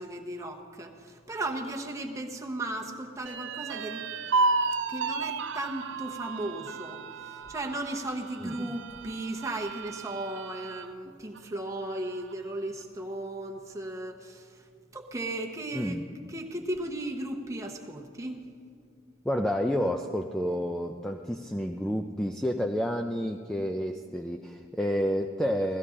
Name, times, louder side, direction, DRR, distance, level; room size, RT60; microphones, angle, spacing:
voice 1, 0.0-4.1 4.9-16.0 16.3-18.5, right 1 dB, 15° right, 2 dB, 0.9 m, -36 dB
sound 1, 3.3-10.9 11.4-11.5 11.8-12.5, right 3 dB, 60° right, 0.5 m, -33 dB
voice 2, 15.7-16.1 19.2-25.8, equal, 5° left, 3 dB, 0.3 m, -30 dB
17.0 x 14.5 x 3.7 m, 2.2 s
head